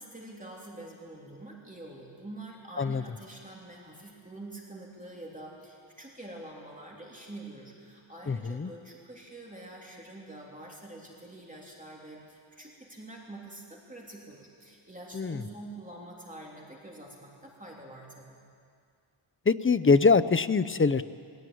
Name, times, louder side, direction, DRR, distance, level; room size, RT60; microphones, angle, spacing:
voice 1, 0.0-18.4, right 2 dB, 15° right, -3 dB, 3.1 m, -46 dB
voice 2, 8.3-8.7 15.1-15.4 19.5-21.0, left 4 dB, 25° left, 14 dB, 0.5 m, -23 dB
20.5 x 17.0 x 9.4 m, 2.3 s
wide cardioid pair, 115°, 49 cm